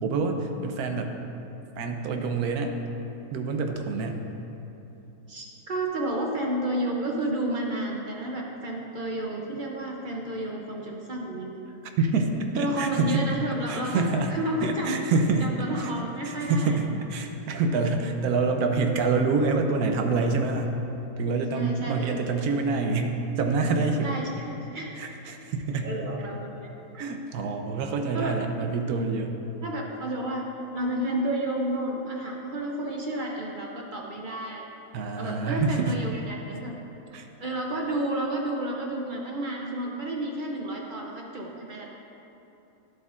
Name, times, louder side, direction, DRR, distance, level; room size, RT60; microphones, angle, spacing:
voice 1, 0.0-1.1 1.8-2.7 3.3-4.2 12.0-13.2 13.7-14.3 14.6-15.5 15.8-15.9 16.2-20.8 21.2-24.1 25.0-25.9 26.9-29.3 34.9-36.0 37.1-37.3, right 4 dB, 85° right, 4 dB, 1.2 m, -26 dB
voice 2, 5.3-11.6 12.6-15.0 15.4-16.8 21.5-22.1 22.4-22.6 24.0-24.9 25.8-26.7 28.1-28.4 29.6-30.5 30.7-34.6 35.2-36.7 37.4-41.9, right 1 dB, 50° right, -1 dB, 0.6 m, -31 dB
10.5 x 7.6 x 2.4 m, 3.0 s
omnidirectional pair, 1.5 m